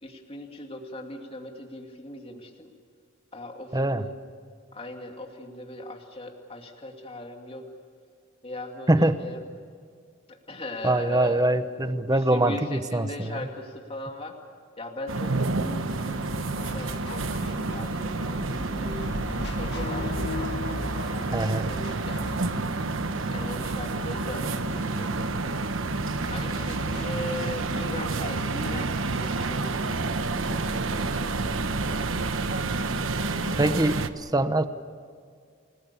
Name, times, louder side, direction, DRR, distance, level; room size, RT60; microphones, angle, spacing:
voice 1, 0.0-2.7 3.3-4.1 4.7-7.7 8.4-8.9 9.2-9.4 10.3-11.5 12.1-14.4 14.8-16.3 16.5-19.0 19.6-20.7 21.1-21.3 21.7-22.8 23.3-25.6 26.3-32.0 32.7-33.8, left 1 dB, 30° left, 3 dB, 2.6 m, -39 dB
voice 2, 3.7-4.0 8.9-9.2 10.8-13.4 21.3-21.7 33.6-34.0 34.3-34.6, right 1 dB, 20° right, 10 dB, 1.0 m, -23 dB
sound 1, 15.1-34.1, right 3 dB, 85° right, 1.2 m, -29 dB
sound 2, 15.9-30.9, left 2 dB, 60° left, 1.9 m, -40 dB
29.5 x 20.5 x 7.0 m, 2.2 s
head